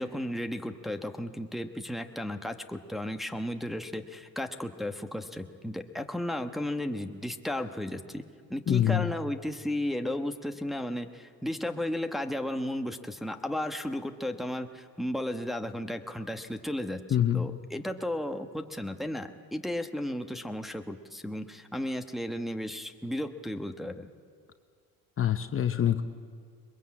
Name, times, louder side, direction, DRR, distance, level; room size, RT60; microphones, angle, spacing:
voice 1, 0.0-8.2 8.5-17.0 17.3-24.1, left 1 dB, ahead, 4 dB, 1.1 m, -34 dB
voice 2, 8.7-9.1 17.1-17.6 25.2-26.0, left 10 dB, 35° left, 8 dB, 0.9 m, -25 dB
22.0 x 21.5 x 8.6 m, 2.1 s
cardioid pair, 110°, 39 cm